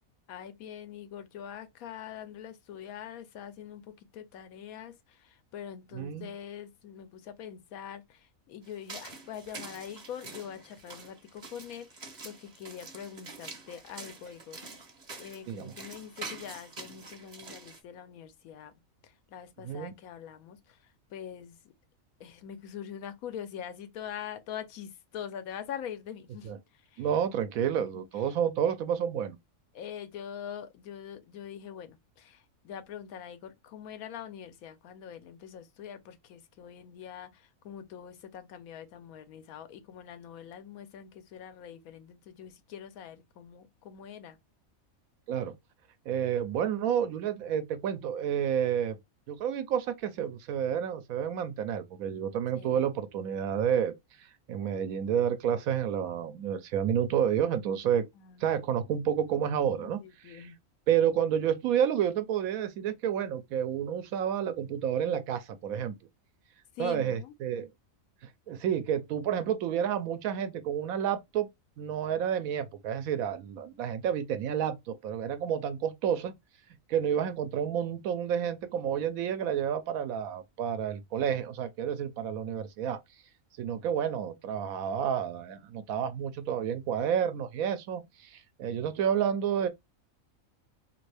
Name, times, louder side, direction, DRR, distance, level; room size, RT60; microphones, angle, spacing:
voice 1, 0.3-14.6 15.2-18.7 19.0-20.8 21.1-21.6 22.2-26.5 26.9-27.1 27.8-28.3 29.7-44.4 52.5-52.9 58.2-58.6 59.7-60.6 66.8-67.3, left 9 dB, 90° left, 1.1 m, -44 dB
voice 2, 5.9-6.3 15.5-15.7 19.6-19.9 26.4-26.6 27.0-29.4 45.3-45.5 46.1-49.0 49.3-53.9 54.5-58.0 58.4-60.0 60.2-60.5 60.9-66.0 66.8-67.7 68.5-71.5 71.8-76.3 76.9-83.0 83.6-89.7, right 9 dB, 80° right, 1.1 m, -30 dB
sound 1, 8.6-17.8, right 3 dB, 40° right, 0.8 m, -46 dB
2.8 x 2.5 x 3.3 m
omnidirectional pair, 1.5 m